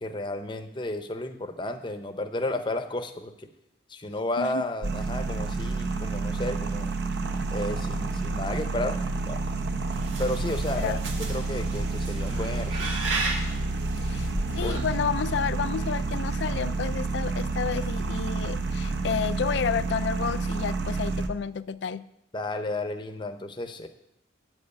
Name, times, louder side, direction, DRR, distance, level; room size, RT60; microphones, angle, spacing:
voice 1, 0.0-3.5 3.9-6.9 7.5-9.0 9.3-9.4 10.2-11.0 11.3-13.0 14.6-14.9 22.3-23.9, left 2 dB, 25° left, 7 dB, 0.7 m, -32 dB
sound 1, 4.8-21.3, right 3 dB, 60° right, 0.7 m, -29 dB
sound 2, 9.9-15.0, right 3 dB, 85° right, 1.9 m, -35 dB
voice 2, 14.0-14.3 14.5-22.0, left 6 dB, 65° left, 16 dB, 0.4 m, -30 dB
9.4 x 5.4 x 8.1 m, 0.84 s
head